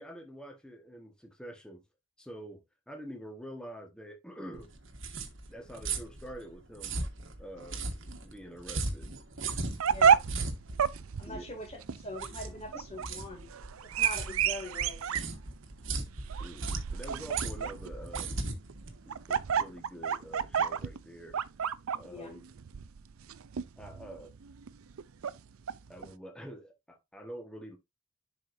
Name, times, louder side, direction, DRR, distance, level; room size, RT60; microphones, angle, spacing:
voice 1, 0.0-1.8 2.2-4.7 5.5-7.0 7.4-7.9 8.2-9.1 11.3-11.5 16.4-18.5 19.1-21.4 21.9-22.5 23.8-24.3 25.9-27.8, right 1 dB, 5° left, 1.3 m, -46 dB
sound 1, 4.5-19.7, right 3 dB, 70° right, 1.4 m, -38 dB
sound 2, 9.5-26.1, right 7 dB, 90° right, 0.5 m, -31 dB
voice 2, 9.9-10.2 11.2-13.5 13.8-15.2 22.1-22.3, left 2 dB, 30° left, 2.4 m, -43 dB
10.5 x 4.9 x 2.6 m
head